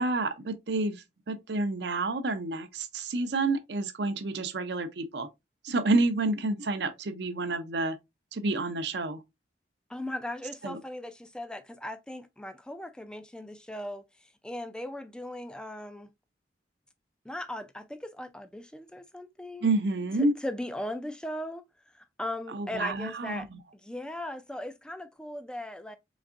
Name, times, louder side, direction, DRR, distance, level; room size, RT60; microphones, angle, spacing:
voice 1, 0.0-5.3 5.6-8.0 8.3-9.2 10.6-10.8 19.6-20.3 22.5-23.6, right 2 dB, 70° right, 0.6 m, -29 dB
voice 2, 9.9-14.0 14.4-16.1 17.3-19.7 20.2-21.6 21.9-23.5 23.7-26.0, left 1 dB, 5° left, 0.3 m, -38 dB
4.0 x 3.4 x 2.5 m
head